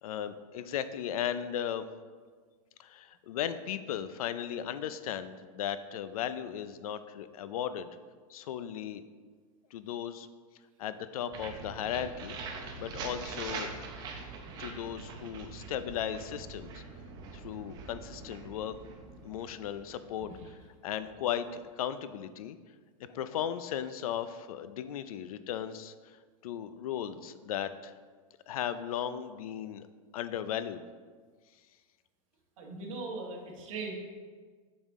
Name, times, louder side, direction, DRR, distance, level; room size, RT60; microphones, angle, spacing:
voice 1, 0.0-1.9 2.8-7.9 8.3-9.0 9.7-10.3 10.8-12.4 12.8-13.7 14.6-16.8 17.3-18.8 19.2-20.3 20.8-22.6 23.0-26.2 26.4-27.9 28.5-29.9 30.1-30.8, left 9 dB, 80° left, 12 dB, 0.5 m, -36 dB
sound 1, 11.3-21.1, right 4 dB, 20° right, 0.6 m, -43 dB
voice 2, 32.6-33.9, right 3 dB, 65° right, 0 dB, 1.5 m, -40 dB
6.9 x 5.5 x 3.6 m, 1.5 s
supercardioid pair, 165°, 18 cm